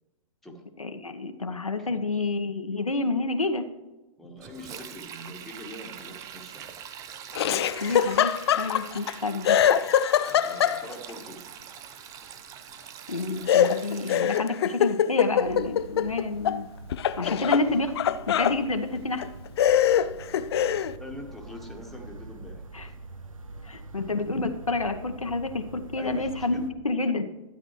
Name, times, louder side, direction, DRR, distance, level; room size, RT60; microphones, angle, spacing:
voice 1, 0.8-3.6 7.8-9.6 13.1-16.7 17.2-17.9 18.3-19.2 22.7-22.9 23.6-27.3, left 3 dB, 85° left, 6 dB, 0.9 m, -29 dB
voice 2, 4.2-6.7 10.3-11.7 14.5-14.6 21.0-22.6 26.0-26.7, left 1 dB, ahead, 0 dB, 1.4 m, -43 dB
Sink (filling or washing), 4.4-14.4, right 9 dB, 20° right, 0.5 m, -43 dB
Laughter, 7.3-9.1 9.4-11.1 13.5-16.6 16.9-18.6 19.2-19.3 19.6-20.9, left 9 dB, 50° left, 0.4 m, -23 dB
sound 1, 15.4-26.7, right 2 dB, 80° right, 0.9 m, -44 dB
12.5 x 8.6 x 3.1 m, 1.1 s
figure-of-eight pair, 115°, 17 cm